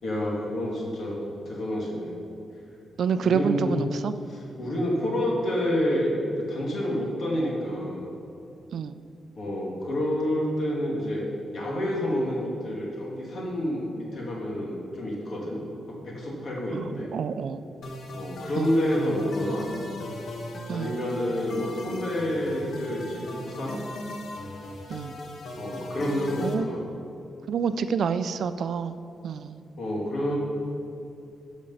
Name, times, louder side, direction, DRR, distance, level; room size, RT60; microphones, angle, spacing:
voice 1, 0.0-2.1 3.2-3.8 4.3-6.1 6.4-8.1 9.4-11.2 11.5-15.6 15.9-17.1 18.1-19.7 20.7-23.8 25.6-26.8 29.8-30.4, equal, 50° left, -3 dB, 2.1 m, -28 dB
voice 2, 3.0-4.1 8.7-8.9 16.7-17.6 18.6-18.7 20.7-21.0 24.9-25.1 26.4-26.7 27.5-29.0 29.2-29.6, right 6 dB, 65° right, 12 dB, 0.3 m, -28 dB
sound 1, 17.8-26.5, left 1 dB, 75° left, 1.2 m, -38 dB
12.5 x 5.2 x 5.4 m, 2.7 s
wide cardioid pair, 170°, 0 cm